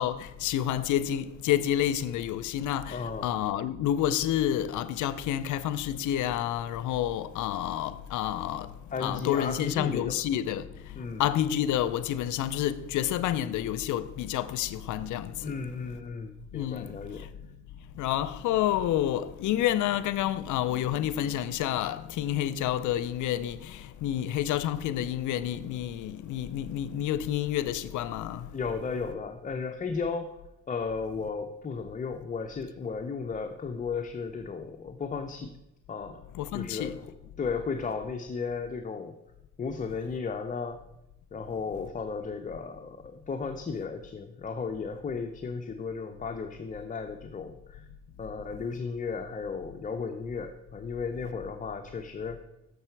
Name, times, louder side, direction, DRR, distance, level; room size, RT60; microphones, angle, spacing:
voice 1, 0.0-8.7 9.0-10.6 11.2-15.5 16.5-16.9 18.0-28.5 36.3-37.0, left 11 dB, 80° left, 0.5 m, -29 dB
voice 2, 2.9-3.3 8.9-10.2 11.0-11.2 15.4-17.3 28.5-30.4 30.7-35.5 35.9-36.2 36.5-36.9 37.4-39.2 39.6-40.8 41.3-47.9 48.2-52.4, left 5 dB, 25° left, 0.5 m, -34 dB
6.6 x 6.6 x 4.5 m
cardioid pair, 90°, 30 cm